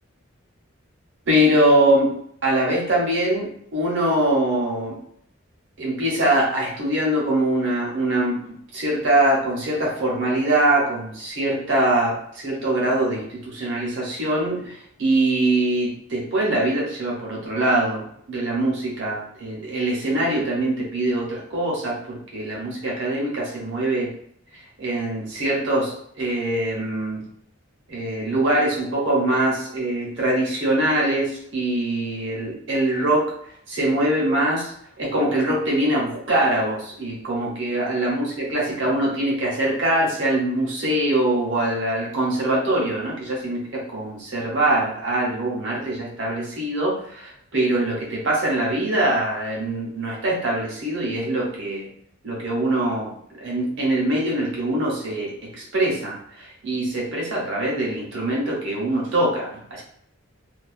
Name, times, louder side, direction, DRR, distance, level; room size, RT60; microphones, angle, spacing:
voice 1, 1.3-2.1 2.4-5.0 5.8-24.1 24.5-27.2 27.9-33.3 33.7-51.9 52.2-53.1 53.4-59.8, right 1 dB, 60° right, -4 dB, 0.8 m, -23 dB
2.3 x 2.3 x 2.4 m, 0.68 s
head